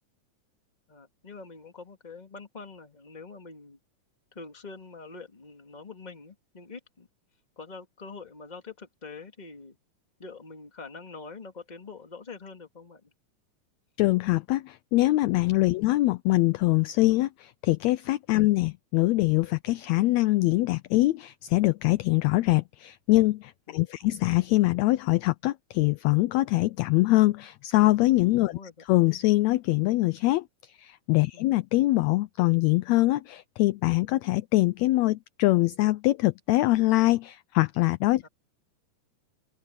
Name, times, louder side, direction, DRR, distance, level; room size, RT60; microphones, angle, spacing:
voice 1, 0.9-3.8 4.3-7.1 7.6-9.8 10.2-13.1 15.7-15.9 18.4-18.5 23.7-24.1 28.4-28.8 31.3-31.5 38.2-38.3, left 4 dB, 15° left, 1.8 m, -45 dB
voice 2, 14.0-28.6 28.9-38.3, left 19 dB, 80° left, 1.6 m, -23 dB
open air
omnidirectional pair, 3.5 m